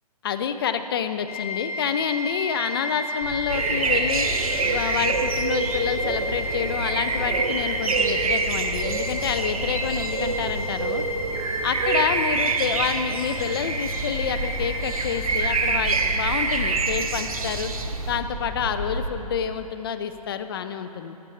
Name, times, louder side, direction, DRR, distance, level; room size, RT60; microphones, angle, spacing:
voice 1, 0.2-4.3 4.6-11.0 11.6-17.7 18.1-21.2, left 8 dB, 35° left, 9 dB, 0.5 m, -28 dB
sound 1, 1.3-16.7, left 1 dB, 65° left, 2.0 m, -33 dB
sound 2, 3.2-19.1, equal, 10° left, 2.4 m, -35 dB
sound 3, 3.5-18.2, right 4 dB, 65° right, 0.8 m, -27 dB
15.0 x 8.2 x 3.2 m, 3.0 s
figure-of-eight pair, 140°, 20 cm